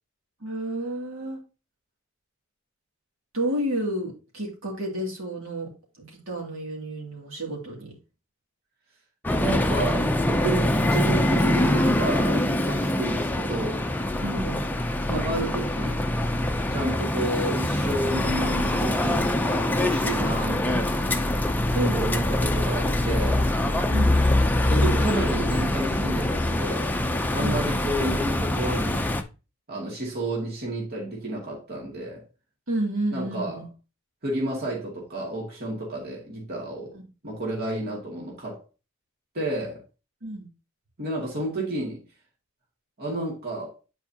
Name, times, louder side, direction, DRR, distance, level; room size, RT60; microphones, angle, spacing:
voice 1, 0.4-1.4 3.3-5.7 6.0-7.9 14.2-14.6 21.7-22.0 23.9-24.1 27.4-27.7 32.7-33.7 36.9-37.1 40.2-40.5, right 1 dB, 75° right, 2.6 m, -30 dB
sound 1, 9.2-29.2, left 1 dB, 10° left, 0.5 m, -24 dB
voice 2, 9.4-13.8 15.1-16.2 16.7-21.1 21.8-23.5 24.6-27.0 27.3-29.1 29.7-32.2 33.1-33.6 34.2-37.0 37.2-38.6 39.3-39.8 41.0-42.0 43.0-43.8, right 1 dB, 50° right, 2.3 m, -31 dB
9.5 x 4.8 x 2.9 m
head